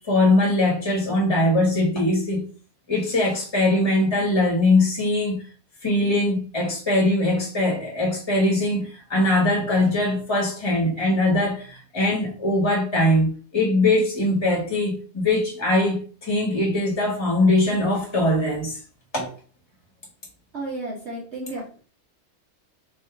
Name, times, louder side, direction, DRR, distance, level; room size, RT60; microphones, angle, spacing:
voice 1, 0.0-2.4 2.9-5.4 5.8-18.8 19.1-19.3, left 2 dB, 20° left, 1.5 m, -21 dB
voice 2, 20.5-21.7, right 2 dB, 50° right, 1.2 m, -32 dB
3.6 x 2.7 x 4.6 m
omnidirectional pair, 1.6 m